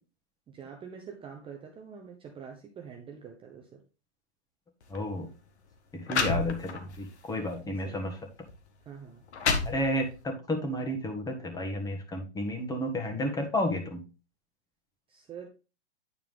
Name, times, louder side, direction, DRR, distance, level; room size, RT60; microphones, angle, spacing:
voice 1, 0.5-3.8 7.7-7.9 8.8-9.2 15.1-15.5, right 7 dB, 15° right, 3 dB, 0.9 m, -45 dB
sound 1, 4.8-5.0 5.7-5.8 6.1-7.0 7.5-7.7 8.5-8.6 9.1-10.2, left 4 dB, 70° left, 1.6 m, -30 dB
voice 2, 4.9-5.3 5.9-8.2 9.6-14.0, left 1 dB, 10° left, 3 dB, 1.7 m, -32 dB
9.5 x 4.6 x 3.6 m, 0.31 s
hypercardioid pair, 120°, 34 cm